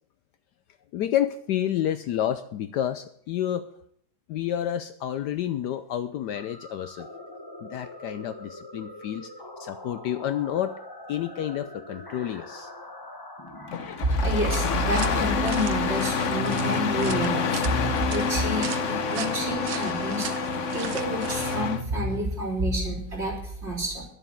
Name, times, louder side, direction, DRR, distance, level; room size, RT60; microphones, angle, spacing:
voice 1, 0.9-3.7 4.3-7.1 7.6-9.3 9.6-10.8 11.1-12.7, left 11 dB, 70° left, 11 dB, 1.1 m, -29 dB
sound 1, 6.3-21.5, left 1 dB, 15° left, 1.0 m, -43 dB
Engine starting, 13.7-21.8, left 5 dB, 50° left, 1.0 m, -28 dB
voice 2, 14.0-20.3 20.7-24.1, equal, 35° right, -3 dB, 4.1 m, -28 dB
sound 2, 14.5-21.6, right 10 dB, 70° right, 1.3 m, -39 dB
11.5 x 7.5 x 8.6 m, 0.66 s
omnidirectional pair, 2.0 m